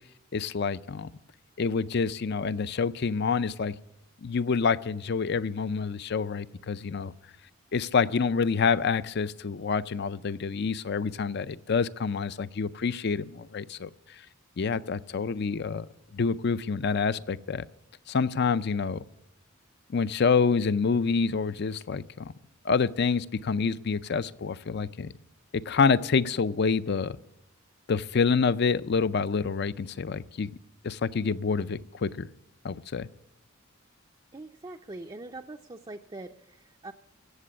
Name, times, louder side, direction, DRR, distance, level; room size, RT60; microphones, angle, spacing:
voice 1, 0.3-1.1 1.6-3.8 4.2-7.1 7.7-13.9 14.6-15.9 16.1-17.6 18.1-19.0 19.9-22.3 22.6-25.1 25.7-27.2 27.9-30.5 30.8-32.3 32.6-33.1, left 5 dB, 50° left, 16 dB, 0.5 m, -27 dB
voice 2, 34.3-36.9, right 2 dB, 20° right, 4 dB, 0.5 m, -43 dB
16.5 x 7.5 x 9.7 m, 0.87 s
head